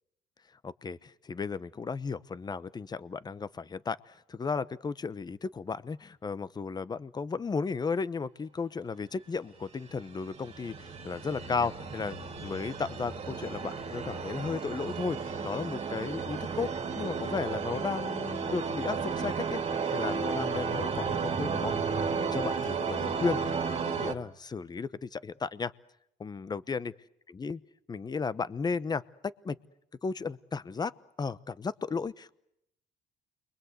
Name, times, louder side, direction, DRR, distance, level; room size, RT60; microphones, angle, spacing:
voice 1, 0.6-16.7 17.0-19.6 19.9-21.7 22.1-25.7 26.2-26.9 27.3-27.6 27.9-29.0 29.4-29.6 30.0-30.9 31.2-32.3, left 5 dB, 25° left, 17 dB, 1.0 m, -34 dB
sound 1, 9.8-24.1, right 5 dB, 35° right, 2.8 m, -33 dB
29.5 x 23.5 x 8.1 m, 0.79 s
cardioid pair, 110°, 17 cm